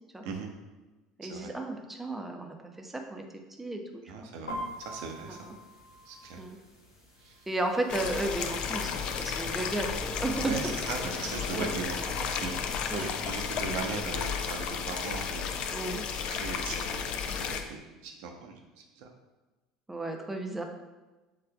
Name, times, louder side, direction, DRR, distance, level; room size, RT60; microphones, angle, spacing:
voice 1, 1.2-3.2 3.6-4.0 5.4-5.5 6.4-6.6 7.5-8.9 9.2-10.8 11.5-11.7 12.9-13.1 15.7-16.0 19.9-20.6, right 2 dB, 10° right, 3 dB, 0.7 m, -33 dB
voice 2, 4.1-5.5 6.1-6.4 7.2-7.4 10.4-12.5 12.9-15.7 16.3-18.6 19.0-19.1, right 4 dB, 60° right, 3 dB, 0.7 m, -39 dB
sound 1, 4.5-12.3, equal, 80° left, 0.8 m, -47 dB
sound 2, 7.9-17.6, left 6 dB, 50° left, 0.4 m, -33 dB
6.7 x 3.3 x 2.3 m, 1.1 s
figure-of-eight pair, 70°, 2 cm